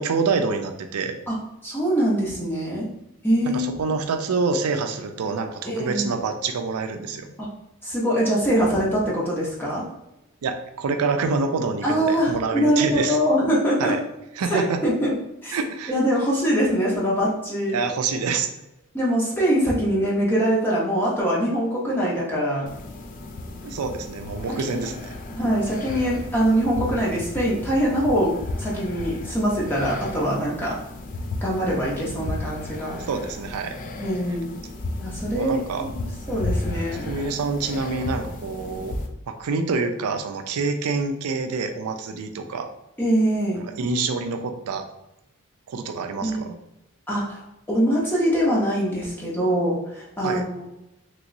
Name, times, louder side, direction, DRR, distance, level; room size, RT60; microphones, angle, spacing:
voice 1, 0.0-1.2 3.4-7.3 10.4-13.2 13.8-14.0 14.4-14.8 15.5-15.9 17.7-18.5 23.6-25.1 33.1-33.7 35.3-35.9 37.1-38.9 39.3-42.7 43.7-44.8 45.7-46.5 50.2-50.4, right 4 dB, 85° right, 7 dB, 0.4 m, -26 dB
voice 2, 1.6-2.9 3.2-3.7 5.6-6.1 7.4-7.5 7.8-9.8 11.8-14.0 14.5-15.1 15.4-15.6 15.9-17.8 18.9-22.7 24.6-24.9 25.3-30.7 31.4-33.0 34.0-34.5 35.0-35.6 35.9-37.1 43.0-43.6 46.2-46.5 47.1-50.6, equal, 10° left, -6 dB, 0.7 m, -23 dB
sound 1, 22.7-39.1, left 2 dB, 35° left, 0.3 m, -34 dB
3.0 x 2.9 x 2.5 m, 0.91 s
head